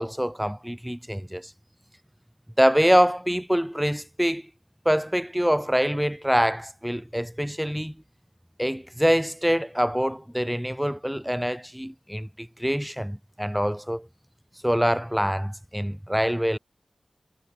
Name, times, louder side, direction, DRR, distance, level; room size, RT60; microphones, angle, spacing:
voice 1, 0.0-1.5 2.6-4.4 4.8-8.0 8.6-14.1 14.6-16.6, equal, 5° right, 4.7 m, -25 dB
wide cardioid pair, 70°, 0 cm